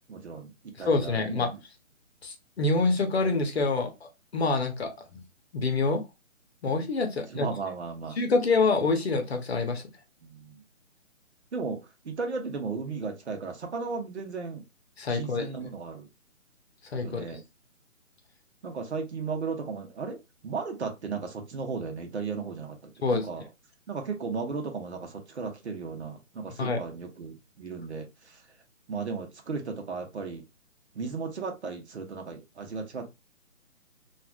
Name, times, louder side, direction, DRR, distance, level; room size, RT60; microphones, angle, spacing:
voice 1, 0.0-1.6 7.3-8.2 10.2-10.5 11.5-11.8 12.0-14.6 15.1-16.1 17.0-17.4 18.6-20.2 20.4-22.8 23.1-23.4 23.9-28.1 28.9-30.4 30.9-33.1, right 4 dB, 55° right, 0.9 m, -35 dB
voice 2, 0.8-1.5 2.2-5.2 5.5-6.0 6.6-7.5 8.2-9.8 15.0-15.7 16.9-17.4 23.0-23.3 26.6-26.8, left 3 dB, 50° left, 0.8 m, -27 dB
3.3 x 2.4 x 2.3 m
figure-of-eight pair, 145°, 40 cm